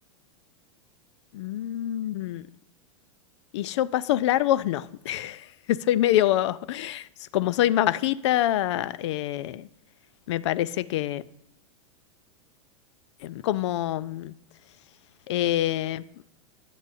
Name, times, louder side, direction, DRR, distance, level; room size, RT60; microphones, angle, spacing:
voice 1, 1.3-2.4 3.5-7.1 7.3-9.7 10.3-11.2 13.2-14.3 15.3-16.0, left 13 dB, 60° left, 0.4 m, -25 dB
9.8 x 8.0 x 2.6 m
hypercardioid pair, 95°, 17 cm